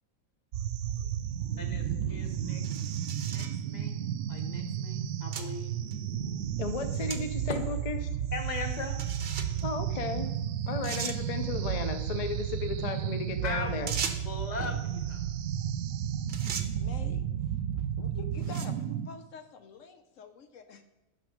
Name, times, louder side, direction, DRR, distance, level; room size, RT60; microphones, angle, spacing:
sound 1, 0.5-19.1, right 9 dB, 80° right, 1.0 m, -33 dB
voice 1, 1.6-2.6 3.2-4.0 4.3-5.8 7.5-7.6 8.3-9.0 13.4-13.7 14.2-15.3, left 3 dB, 35° left, 4 dB, 1.1 m, -39 dB
sound 2, 1.7-1.8 2.6-3.6 4.4-4.5 5.3-5.5 5.9-6.0 7.1-7.2 7.6-7.7 9.0-9.6 10.3-10.4 10.8-11.2 13.9-14.4 15.8-16.0 16.3-16.7 17.5-17.7 18.3-18.8, right 6 dB, 50° right, 0.9 m, -37 dB
voice 2, 6.6-8.0 9.6-10.3 10.7-13.9, left 4 dB, 50° left, 8 dB, 0.4 m, -34 dB
voice 3, 16.8-17.2 17.8-18.8 19.0-20.8, left 4 dB, 70° left, 8 dB, 1.0 m, -46 dB
9.3 x 5.9 x 5.1 m, 1.0 s
omnidirectional pair, 1.4 m